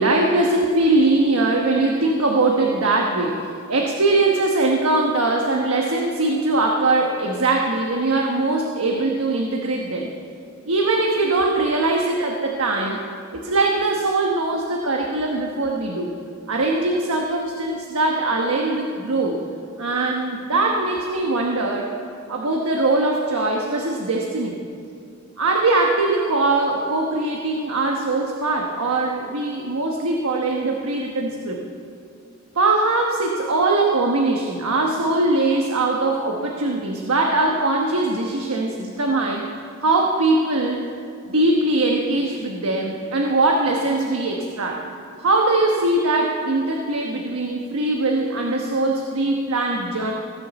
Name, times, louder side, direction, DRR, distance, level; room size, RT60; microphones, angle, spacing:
voice 1, 0.0-10.1 10.6-13.0 13.3-16.1 16.5-19.4 19.8-22.0 22.3-24.6 25.4-31.6 32.5-40.8 41.3-44.8 45.2-50.1, right 2 dB, 85° right, 1 dB, 1.1 m, -21 dB
17.0 x 7.1 x 7.0 m, 2.4 s
head